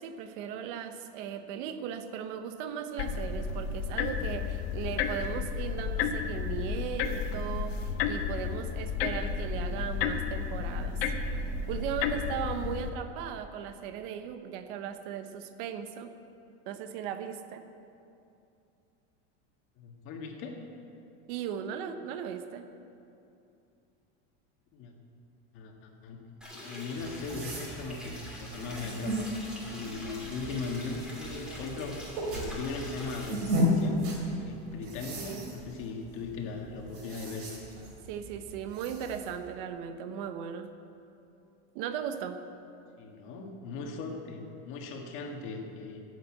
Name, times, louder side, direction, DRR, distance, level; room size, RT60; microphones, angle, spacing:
voice 1, 0.0-11.0 11.7-16.2 16.7-17.6 21.3-22.7 35.2-35.4 38.1-40.7 41.7-42.4, right 8 dB, 50° right, 9 dB, 0.9 m, -37 dB
sound 1, 3.0-12.9, left 6 dB, 65° left, 1.2 m, -32 dB
voice 2, 19.8-20.6 24.7-24.9 25.5-29.3 29.7-34.0 34.4-37.6 43.0-46.0, left 4 dB, 40° left, 2 dB, 1.7 m, -38 dB
sound 2, 26.4-33.3, left 1 dB, ahead, 2.6 m, -45 dB
sound 3, 26.9-39.3, equal, 70° right, 3.7 m, -35 dB
13.5 x 8.2 x 8.5 m, 2.7 s
supercardioid pair, 170°, 33 cm